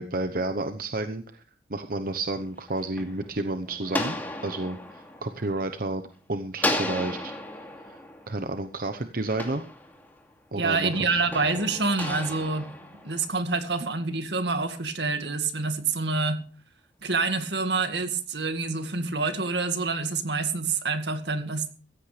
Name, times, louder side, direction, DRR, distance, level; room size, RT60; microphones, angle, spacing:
voice 1, 0.0-1.4 1.7-4.2 4.4-6.0 6.3-7.4 7.9-8.0 8.3-9.6 10.5-11.2, right 2 dB, 55° right, 1.0 m, -31 dB
sound 1, 2.4-6.1 6.6-10.3 10.9-13.6, left 1 dB, 10° left, 2.6 m, -35 dB
voice 2, 10.5-12.7 13.0-16.4 17.0-21.7, right 3 dB, 80° right, 1.9 m, -27 dB
16.0 x 14.5 x 3.4 m
head